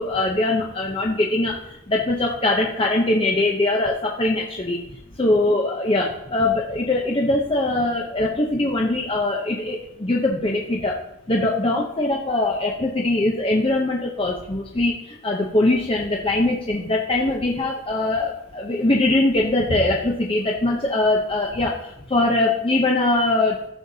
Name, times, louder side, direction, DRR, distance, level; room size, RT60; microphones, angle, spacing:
voice 1, 0.0-11.0 11.3-23.7, left 2 dB, 25° left, -2 dB, 0.7 m, -22 dB
13.0 x 6.5 x 2.8 m, 0.82 s
head